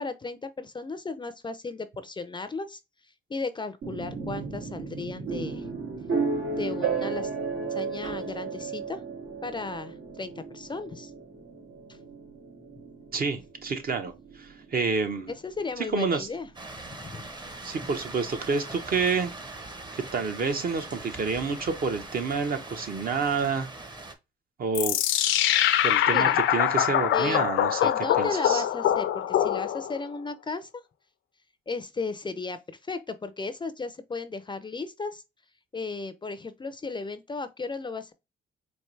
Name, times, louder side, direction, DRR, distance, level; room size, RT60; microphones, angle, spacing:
voice 1, 0.0-2.8 3.3-5.7 6.5-7.3 7.7-9.0 9.4-11.1 11.9-12.0 15.3-16.5 17.0-17.2 26.1-26.4 27.1-27.5 27.8-30.7 31.7-35.2 35.7-38.1, left 3 dB, 25° left, 0.4 m, -35 dB
sound 1, 3.8-17.6, right 5 dB, 80° right, 2.3 m, -34 dB
voice 2, 13.1-14.1 14.4-15.3 15.9-16.3 17.6-19.3 19.9-23.7 24.6-25.0 25.8-27.9 28.2-28.6, right 4 dB, 50° right, 0.9 m, -28 dB
sound 2, 16.6-24.2, right 2 dB, 20° right, 0.9 m, -41 dB
sound 3, 24.7-30.0, left 11 dB, 80° left, 0.5 m, -24 dB
4.5 x 2.7 x 3.1 m
cardioid pair, 90°, 20 cm